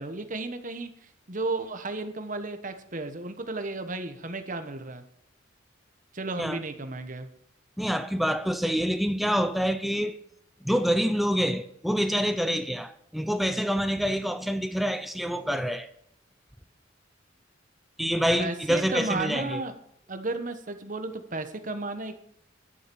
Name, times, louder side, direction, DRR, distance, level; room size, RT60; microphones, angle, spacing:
voice 1, 0.0-5.0 6.1-7.3 18.4-19.7 20.1-22.2, right 2 dB, 40° right, 1.2 m, -33 dB
voice 2, 7.8-10.2 10.6-15.9 18.0-19.6, equal, ahead, 0.5 m, -26 dB
11.5 x 7.8 x 7.0 m
head